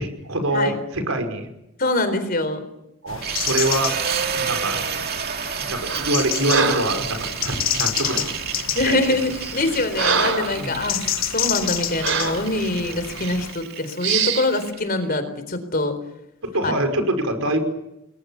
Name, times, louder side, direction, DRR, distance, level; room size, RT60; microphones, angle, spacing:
voice 1, 0.0-1.5 3.0-3.9 4.3-4.9 5.6-8.3 8.8-9.0 10.5-10.9 16.4-17.6, right 1 dB, 90° right, 6 dB, 5.4 m, -25 dB
voice 2, 1.8-2.7 8.7-15.9 16.6-16.7, left 2 dB, 45° left, 10 dB, 4.1 m, -24 dB
sound 1, 3.1-13.5, left 10 dB, 75° left, 1.6 m, -30 dB
sound 2, 3.2-15.2, right 7 dB, 50° right, 2.5 m, -30 dB
Breathing, 5.9-6.2 6.5-7.0 8.0-8.3 9.0-9.1 9.6-10.6 11.1-11.2 12.0-12.4 13.1-13.4 14.0-14.5, right 5 dB, 70° right, 4.1 m, -24 dB
30.0 x 21.5 x 7.2 m, 0.86 s
head